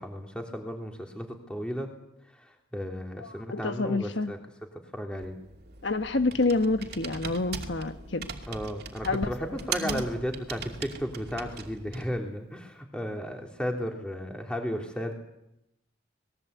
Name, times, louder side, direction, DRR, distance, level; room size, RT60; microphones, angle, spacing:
voice 1, 0.0-1.9 2.4-4.4 4.9-5.4 8.5-15.1, equal, 5° left, 3.3 m, -34 dB
voice 2, 3.2-4.3 5.8-8.3 9.0-9.5 9.8-10.0, left 3 dB, 70° left, 1.2 m, -28 dB
Computer keyboard, 5.2-12.2, right 5 dB, 55° right, 2.6 m, -39 dB
26.0 x 21.0 x 8.3 m
head